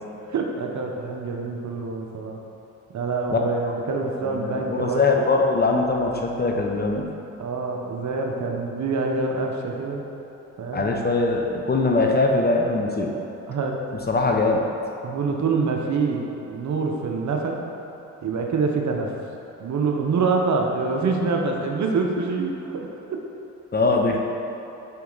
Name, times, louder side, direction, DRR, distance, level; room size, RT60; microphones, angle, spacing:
voice 1, 0.3-2.4 2.9-5.0 7.4-10.0 10.6-10.9 13.5-13.8 15.0-17.6 18.2-19.2 19.6-23.2, right 4 dB, 50° right, 2 dB, 0.9 m, -26 dB
voice 2, 3.9-7.0 10.7-13.1 14.1-14.6 23.7-24.2, left 3 dB, 25° left, 1 dB, 0.7 m, -22 dB
5.6 x 5.4 x 3.9 m, 3.0 s
hypercardioid pair, 55°, 37 cm